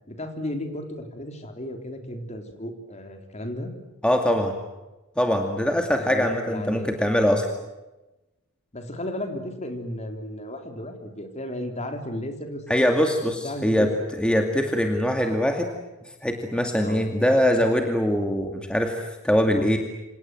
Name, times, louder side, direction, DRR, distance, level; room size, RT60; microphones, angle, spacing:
voice 1, 0.1-3.7 6.0-6.9 8.7-13.2 13.4-13.9 16.8-17.1, left 1 dB, 30° left, 5 dB, 3.9 m, -34 dB
voice 2, 4.0-4.6 5.2-7.5 12.7-13.9 14.2-15.7 16.2-19.8, equal, 5° left, 3 dB, 2.4 m, -22 dB
28.0 x 27.0 x 7.9 m, 1.0 s
head